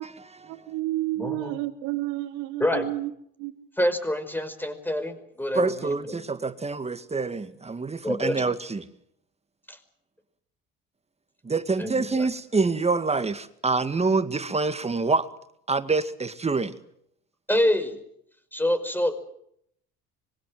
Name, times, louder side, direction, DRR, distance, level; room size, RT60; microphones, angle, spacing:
voice 1, 0.5-3.1 3.4-3.7, right 17 dB, 85° right, 2.7 m, -30 dB
voice 2, 1.2-1.6 2.6-2.9 3.8-6.2 8.0-8.4 9.7-9.8 11.8-12.3 17.5-18.0 18.5-19.2, left 1 dB, 5° left, 5.3 m, -26 dB
voice 3, 5.6-8.9 11.4-15.3 15.7-16.8, right 4 dB, 20° right, 2.0 m, -26 dB
25.5 x 23.0 x 7.8 m
supercardioid pair, 90°, 31 cm